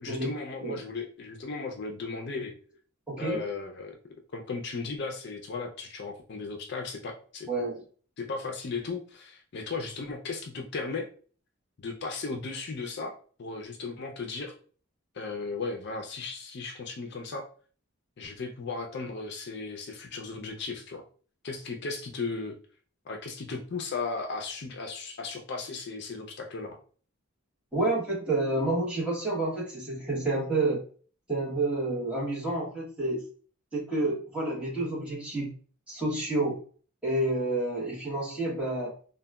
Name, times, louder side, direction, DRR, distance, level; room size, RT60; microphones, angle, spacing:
voice 1, 0.0-2.5 3.2-4.0 4.3-7.5 8.2-11.1 11.8-14.5 15.1-17.5 18.2-21.0 21.4-22.6 23.1-26.8, left 4 dB, 55° left, 3 dB, 0.4 m, -36 dB
voice 2, 3.1-3.4 7.5-7.8 27.7-30.8 31.3-33.2 33.7-35.5 35.9-36.6 37.0-38.9, right 2 dB, 5° right, -5 dB, 1.0 m, -29 dB
3.8 x 2.2 x 2.2 m, 0.41 s
head